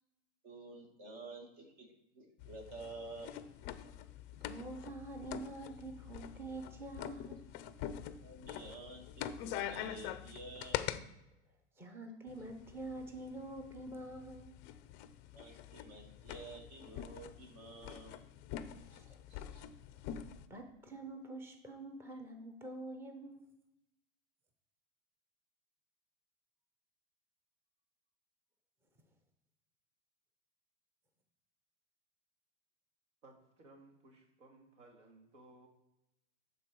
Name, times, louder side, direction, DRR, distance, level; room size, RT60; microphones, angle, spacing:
voice 1, 0.4-1.9 2.1-3.4 8.2-10.9 15.3-18.2 18.9-19.2 19.5-19.6, right 2 dB, 50° right, 2 dB, 2.4 m, -50 dB
sound 1, 2.4-11.0 12.3-20.5, left 11 dB, 30° left, 0.4 m, -45 dB
voice 2, 4.4-7.4 11.8-14.5 18.7-19.0 19.3-19.4 19.9-23.4, right 2 dB, 5° right, 5 dB, 0.6 m, -46 dB
voice 3, 33.2-35.7, right 2 dB, 85° right, 3 dB, 2.2 m, -60 dB
11.5 x 4.1 x 4.6 m, 0.90 s
supercardioid pair, 135°, 36 cm